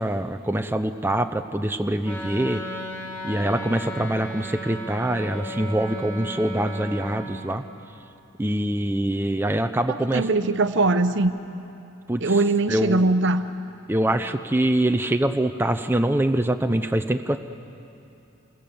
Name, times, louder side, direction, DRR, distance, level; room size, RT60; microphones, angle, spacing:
voice 1, 0.0-2.6 3.2-7.6 8.4-10.3 12.1-12.4 12.7-13.1 13.9-17.4, right 1 dB, 10° right, 7 dB, 0.6 m, -24 dB
Wind instrument woodwind instrument, 2.0-7.2, equal, 10° left, 4.0 m, -35 dB
voice 2, 9.9-11.3 12.2-13.4, right 2 dB, 60° right, 10 dB, 0.9 m, -21 dB
28.0 x 21.5 x 7.0 m, 2.8 s
head